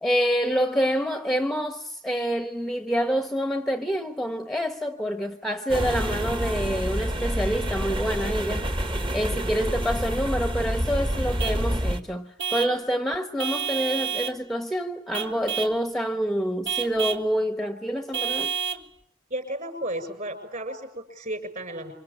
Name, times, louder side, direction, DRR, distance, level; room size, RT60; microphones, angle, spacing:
voice 1, 0.0-8.7 9.1-18.5, equal, ahead, 1.0 m, -27 dB
sound 1, 5.7-12.0, equal, 25° right, 1.5 m, -28 dB
Vehicle horn car horn honking / Truck, 11.4-11.7 12.4-12.8 13.4-14.4 15.1-15.8 16.6-17.3 18.1-18.9, right 8 dB, 60° right, 1.7 m, -29 dB
voice 2, 19.3-21.9, right 1 dB, 40° right, 6.4 m, -33 dB
28.0 x 25.0 x 8.5 m
head